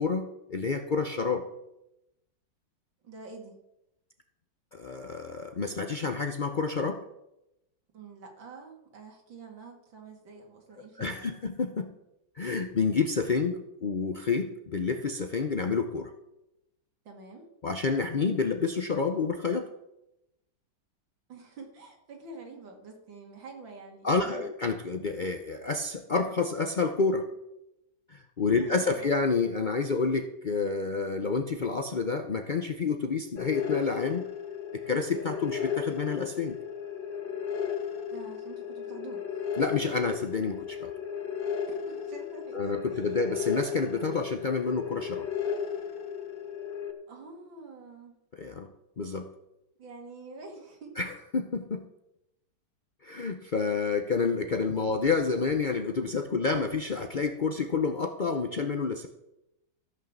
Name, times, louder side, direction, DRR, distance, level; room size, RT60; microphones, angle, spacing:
voice 1, 0.0-1.4 4.7-7.0 11.0-11.9 12.4-16.1 17.6-19.7 24.0-27.3 28.1-34.3 34.7-36.6 39.6-40.9 42.5-45.3 48.3-49.3 51.0-51.9 53.0-59.1, left 4 dB, 85° left, 6 dB, 0.4 m, -29 dB
voice 2, 3.0-3.6 7.9-11.4 17.0-17.5 21.3-24.5 28.6-29.2 38.1-39.5 41.7-43.1 47.1-48.2 49.8-50.9 54.8-54.9, right 3 dB, 85° right, 2 dB, 2.9 m, -47 dB
sound 1, 33.4-46.9, left 7 dB, 35° left, 1.0 m, -35 dB
14.0 x 6.3 x 7.2 m, 0.88 s
omnidirectional pair, 2.0 m